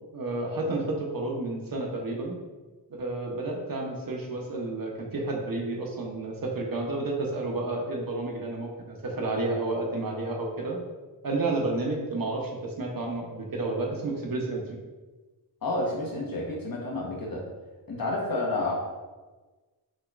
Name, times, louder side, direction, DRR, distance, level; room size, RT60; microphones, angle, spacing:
voice 1, 0.1-2.4 2.9-10.8 11.2-14.6, right 2 dB, 55° right, 0 dB, 0.8 m, -31 dB
voice 2, 15.6-17.4 17.9-18.7, left 2 dB, 55° left, -3 dB, 1.2 m, -30 dB
6.3 x 3.0 x 2.5 m, 1.3 s
wide cardioid pair, 100°, 42 cm